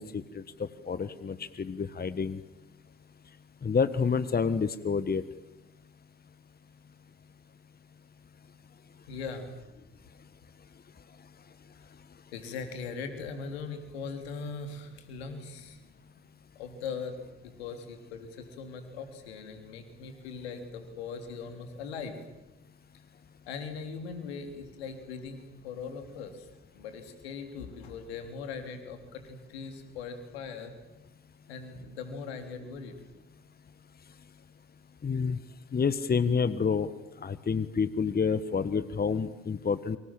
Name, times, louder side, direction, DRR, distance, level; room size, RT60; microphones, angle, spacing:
voice 1, 0.0-2.4 3.6-5.2 35.0-35.4 35.7-36.9 37.2-40.0, left 5 dB, 30° left, 14 dB, 1.4 m, -29 dB
voice 2, 9.1-9.5 12.3-15.8 16.6-17.1 17.4-22.1 23.5-26.5 26.7-30.7 31.5-32.9, left 5 dB, 80° left, 7 dB, 3.6 m, -40 dB
29.5 x 25.5 x 7.6 m, 0.96 s
figure-of-eight pair, 45°, 31 cm